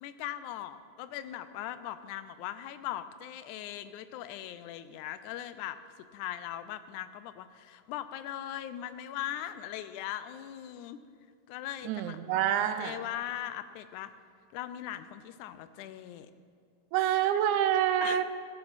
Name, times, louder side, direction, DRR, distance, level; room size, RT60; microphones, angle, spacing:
voice 1, 0.0-5.8 6.1-11.0 11.5-12.4 12.8-14.1 14.5-16.3 18.0-18.2, left 12 dB, 90° left, 12 dB, 2.1 m, -40 dB
voice 2, 11.8-13.0 16.9-18.2, right 10 dB, 85° right, 10 dB, 2.1 m, -27 dB
16.0 x 10.5 x 4.1 m, 2.1 s
omnidirectional pair, 3.4 m